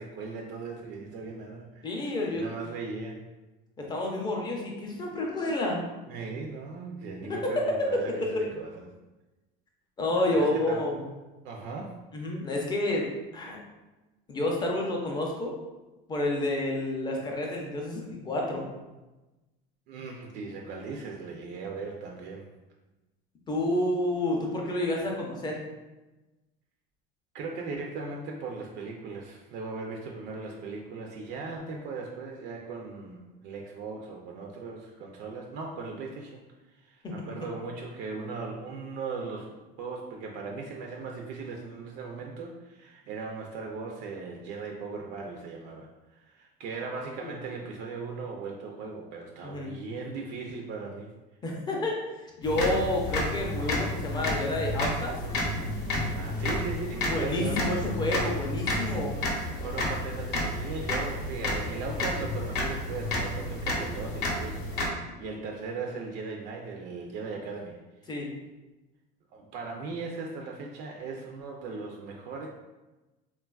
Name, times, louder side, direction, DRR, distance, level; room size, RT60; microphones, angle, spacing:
voice 1, 0.0-3.3 6.1-8.9 10.1-10.8 11.4-12.0 19.9-22.5 27.3-36.4 36.7-51.1 56.1-57.8 59.6-67.8 69.3-72.5, right 4 dB, 55° right, 0 dB, 0.4 m, -38 dB
voice 2, 1.8-2.4 3.8-5.9 7.3-7.5 8.2-8.4 10.0-11.0 12.1-13.1 13.3-13.6 14.3-15.5 16.1-18.6 23.5-25.6 37.0-37.1 47.2-47.3 49.4-49.7 51.4-52.0 52.4-55.2 57.1-59.1 68.1-68.3, left 1 dB, 20° left, -1 dB, 0.5 m, -29 dB
sound 1, 52.4-64.9, left 1 dB, 50° left, 0.7 m, -31 dB
3.1 x 2.3 x 2.3 m, 1.1 s
cardioid pair, 140°, 21 cm